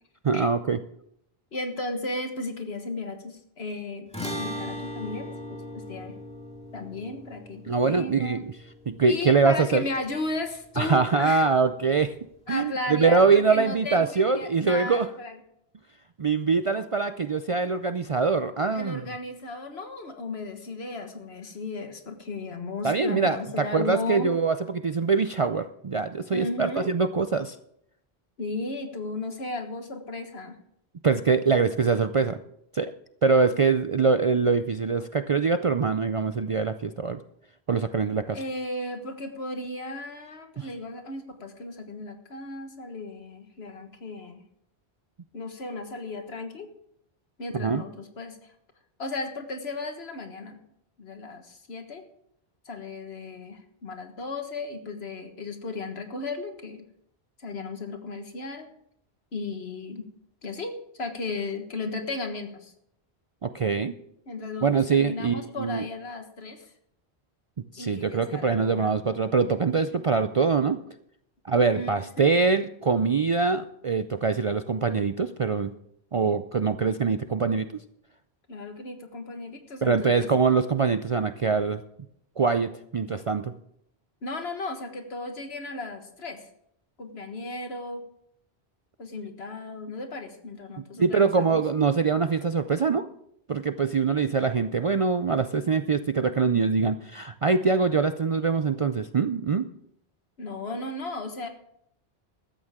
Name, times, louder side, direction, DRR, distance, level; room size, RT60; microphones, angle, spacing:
voice 1, 0.2-0.8 7.7-8.4 8.9-9.8 10.8-12.1 12.5-15.1 16.2-19.0 22.8-27.6 31.0-32.4 32.7-32.9 33.2-37.2 37.7-38.4 40.6-40.7 47.6-47.8 63.4-63.9 64.6-65.8 67.7-70.8 71.4-75.7 76.1-77.7 79.8-81.8 82.4-83.5 91.0-93.1 93.5-99.7, right 4 dB, 45° right, 10 dB, 0.4 m, -23 dB
voice 2, 1.5-4.1 4.4-6.2 6.7-8.5 9.1-11.5 12.5-15.4 16.7-16.8 18.7-24.3 26.3-26.9 28.4-30.6 38.3-44.4 45.3-46.7 47.4-48.5 49.0-50.6 51.0-52.1 52.7-56.8 57.4-58.7 59.3-60.1 60.4-62.7 64.3-66.7 67.8-69.0 71.7-72.3 78.5-80.3 84.2-86.5 87.0-88.0 89.0-91.6 100.4-101.5, left 2 dB, 75° left, 6 dB, 1.8 m, -35 dB
sound 1, 4.1-10.7, equal, 5° left, 2.1 m, -39 dB
15.0 x 13.0 x 3.7 m, 0.73 s
omnidirectional pair, 1.1 m